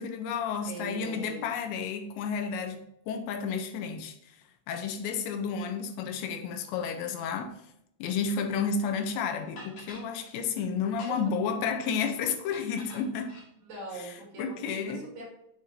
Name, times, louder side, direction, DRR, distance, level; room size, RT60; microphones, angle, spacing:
voice 1, 0.0-4.1 4.7-7.6 8.0-13.4 14.4-15.1, left 6 dB, 80° left, 3.0 m, -31 dB
voice 2, 0.7-1.5 11.1-11.4 13.6-15.2, right 2 dB, 45° right, 3.4 m, -42 dB
sound 1, 9.1-9.2 9.6-10.1 10.9-11.4 12.5-13.5, left 2 dB, 50° left, 2.9 m, -48 dB
7.6 x 6.9 x 2.7 m
omnidirectional pair, 5.3 m